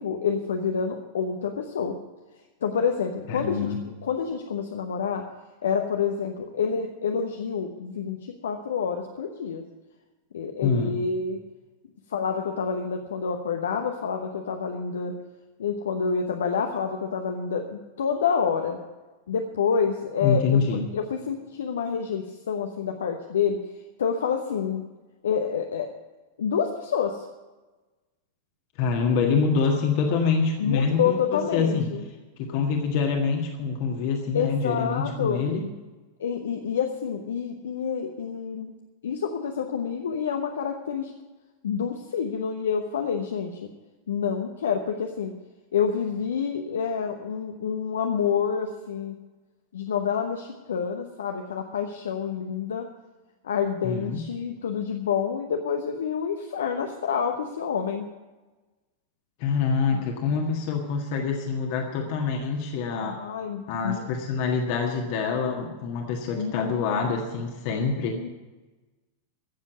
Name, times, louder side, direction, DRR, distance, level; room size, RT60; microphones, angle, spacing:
voice 1, 0.0-2.0 2.6-5.2 5.6-9.6 10.3-11.4 12.1-15.1 15.6-18.8 19.3-23.6 24.0-24.8 25.2-25.9 26.4-27.3 30.6-32.0 34.3-35.4 36.2-38.7 39.0-41.1 41.6-43.5 44.1-45.3 45.7-49.1 49.7-52.9 53.4-58.1 59.9-60.0 62.9-64.0 66.3-66.7 68.1-68.3, left 6 dB, 65° left, 4 dB, 1.0 m, -28 dB
voice 2, 3.3-3.8 10.6-11.0 20.2-20.9 28.8-31.9 32.4-35.7 53.8-54.3 59.4-63.2 63.7-68.2, left 5 dB, 45° left, 2 dB, 1.6 m, -26 dB
14.5 x 7.4 x 8.1 m, 1.2 s
figure-of-eight pair, 90°, 0 cm